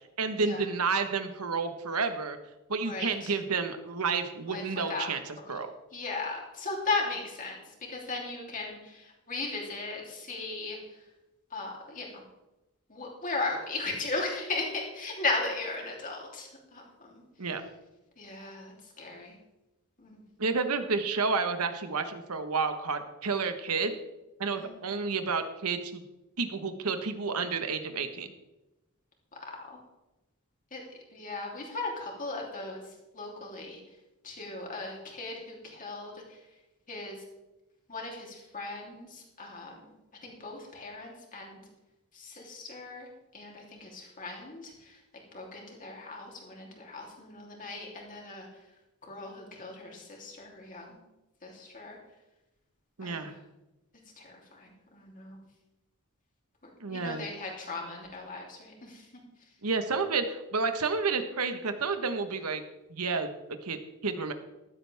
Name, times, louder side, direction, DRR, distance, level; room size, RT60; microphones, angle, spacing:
voice 1, 0.2-2.4 2.7-5.7 17.4-17.6 20.4-24.0 24.4-26.0 26.4-28.3 53.0-53.3 56.8-57.3 59.6-62.6 62.9-63.3 63.6-63.8 64.0-64.3, right 4 dB, 80° right, 8 dB, 1.3 m, -30 dB
voice 2, 5.9-7.5 7.9-8.8 9.3-10.0 10.3-10.8 11.5-12.0 12.9-16.5 16.7-16.8 18.2-18.7 19.0-19.3 20.0-20.2 24.6-24.7 30.7-30.8 31.1-32.8 33.2-33.8 34.2-36.1 36.9-37.1 37.9-38.3 38.5-39.1 39.4-39.7 40.2-41.6 42.5-43.1 43.3-43.9 44.2-44.6 45.3-48.4 49.1-50.8 51.4-52.0 53.0-53.2 54.9-55.4 56.9-58.9, left 3 dB, 40° left, -1 dB, 3.2 m, -36 dB
14.5 x 12.5 x 3.5 m, 0.98 s
head